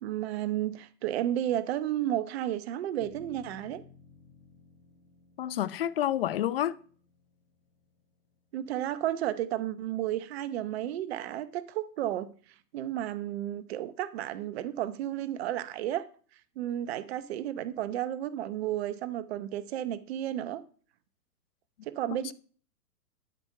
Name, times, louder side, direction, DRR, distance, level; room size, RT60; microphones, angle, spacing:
voice 1, 0.0-3.8 8.5-12.3 12.7-16.0 16.6-20.6 21.9-22.3, right 12 dB, 40° right, 0.9 m, -32 dB
sound 1, 3.0-9.5, left 6 dB, 20° left, 4.0 m, -57 dB
voice 2, 5.4-6.8, left 12 dB, 40° left, 0.6 m, -29 dB
12.5 x 6.0 x 5.5 m
hypercardioid pair, 135°, 49 cm